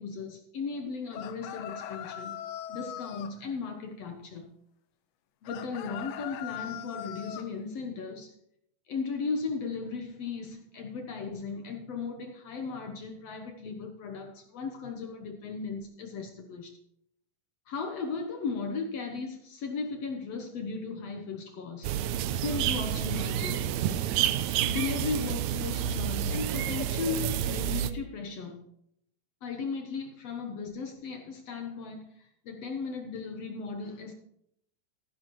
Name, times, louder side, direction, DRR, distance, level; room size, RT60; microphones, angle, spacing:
voice 1, 0.0-2.4 2.7-4.5 5.4-8.3 8.9-16.7 17.7-21.9 22.4-23.7 24.6-28.6 29.4-32.1 32.5-34.1, left 4 dB, 60° left, 4 dB, 1.9 m, -36 dB
sound 1, 1.1-3.3 5.4-7.5, left 11 dB, 85° left, 2.5 m, -40 dB
sound 2, 21.8-27.9, right 10 dB, 75° right, 1.8 m, -29 dB
14.5 x 11.0 x 3.1 m, 0.73 s
omnidirectional pair, 3.8 m